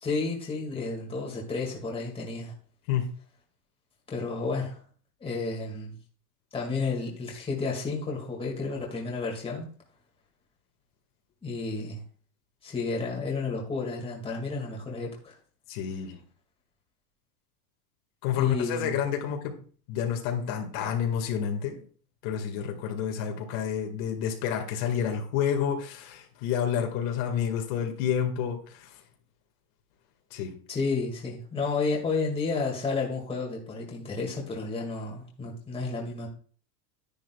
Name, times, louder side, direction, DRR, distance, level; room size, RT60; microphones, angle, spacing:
voice 1, 0.0-2.5 4.1-4.8 5.2-6.0 6.5-9.7 11.4-12.0 12.6-15.3 18.4-19.0 30.7-36.3, left 3 dB, 10° left, -1 dB, 2.1 m, -31 dB
voice 2, 15.7-16.2 18.2-19.5 19.9-21.8 22.2-29.0 30.3-30.5, left 8 dB, 55° left, 3 dB, 2.0 m, -29 dB
10.5 x 10.5 x 2.4 m, 0.43 s
supercardioid pair, 155°, 48 cm